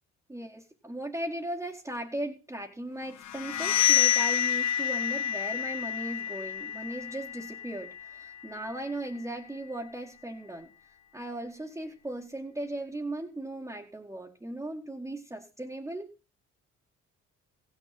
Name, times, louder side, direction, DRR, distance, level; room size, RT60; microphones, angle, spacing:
voice 1, 0.3-10.7 11.1-16.1, right 1 dB, 10° right, -2 dB, 1.7 m, -37 dB
sound 1, 3.2-8.9, left 11 dB, 65° left, 0.9 m, -29 dB
15.5 x 6.7 x 5.9 m, 0.33 s
cardioid pair, 90°, 30 cm